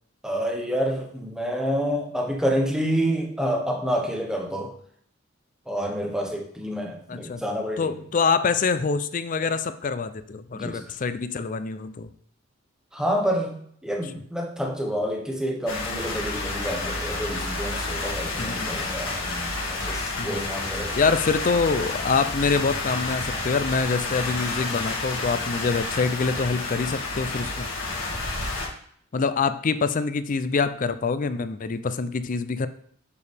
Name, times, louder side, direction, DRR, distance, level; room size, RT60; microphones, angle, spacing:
voice 1, 0.2-4.7 5.7-8.0 10.5-10.9 12.9-20.9, equal, 5° right, 1 dB, 1.2 m, -28 dB
voice 2, 7.1-7.4 7.8-12.1 18.4-18.7 20.2-20.4 20.9-27.7 29.1-32.7, left 4 dB, 40° left, 12 dB, 0.4 m, -25 dB
sound 1, 15.7-28.7, left 2 dB, 75° left, 1.9 m, -30 dB
6.8 x 6.8 x 3.4 m, 0.62 s
head